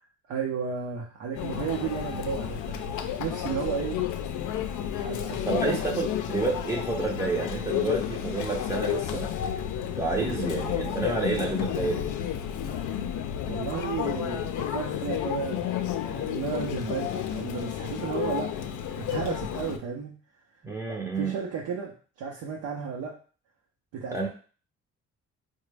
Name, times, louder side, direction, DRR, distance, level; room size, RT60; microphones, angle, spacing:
voice 1, 0.3-4.0 5.0-5.8 13.5-20.2 20.9-23.1 23.9-24.3, right 6 dB, 90° right, -1 dB, 0.7 m, -33 dB
Conversation / Chatter / Crowd, 1.3-19.8, left 10 dB, 80° left, 0.5 m, -31 dB
voice 2, 5.5-9.3 10.0-12.1 20.6-21.4 24.1-24.3, right 3 dB, 10° right, -2 dB, 0.5 m, -29 dB
3.9 x 2.2 x 3.3 m, 0.40 s
cardioid pair, 90°, 30 cm